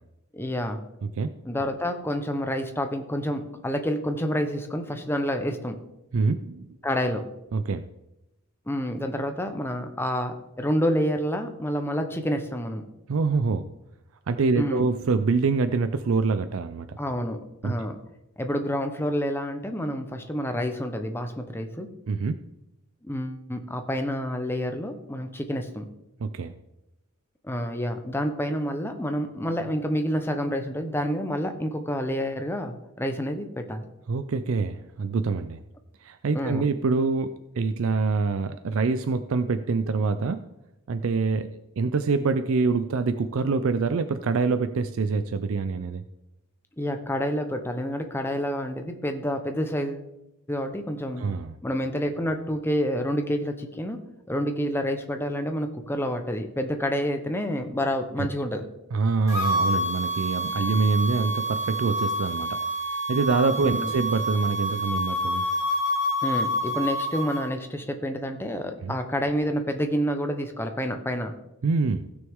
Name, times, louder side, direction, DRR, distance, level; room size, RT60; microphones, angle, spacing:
voice 1, 0.3-0.8 1.4-5.8 6.8-7.2 8.7-12.8 14.6-14.9 17.0-17.4 17.6-18.0 18.4-21.9 23.0-25.8 27.4-33.9 36.3-36.6 46.8-50.1 50.5-51.2 51.6-54.0 54.3-58.7 63.6-63.9 66.2-71.3, equal, 10° left, 6 dB, 0.8 m, -28 dB
voice 2, 1.0-1.3 6.1-6.7 7.5-7.9 13.1-13.7 14.3-17.0 17.6-17.9 22.1-22.5 26.2-26.5 34.1-35.6 36.0-40.5 40.9-46.0 51.2-51.5 58.2-58.3 58.9-62.6 63.1-65.5 68.8-68.9 71.6-72.1, right 4 dB, 65° right, 11 dB, 0.4 m, -25 dB
sound 1, 59.3-67.4, equal, 15° right, 2.7 m, -28 dB
16.0 x 6.2 x 3.6 m, 0.93 s
head